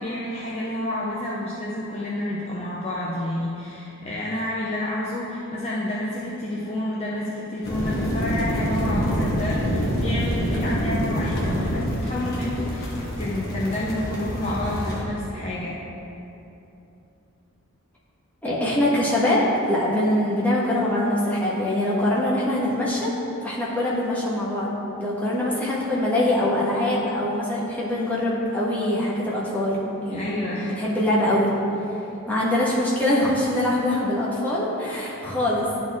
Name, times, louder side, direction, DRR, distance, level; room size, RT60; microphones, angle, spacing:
voice 1, 0.0-12.9 13.2-15.8 30.1-30.7, left 1 dB, 30° left, -6 dB, 0.6 m, -29 dB
sound 1, 7.6-15.0, equal, 45° left, 1.3 m, -26 dB
voice 2, 18.4-23.1 23.4-24.7 25.0-31.5 32.3-35.7, left 1 dB, 5° left, -7 dB, 1.3 m, -23 dB
11.5 x 4.3 x 3.6 m, 2.9 s
head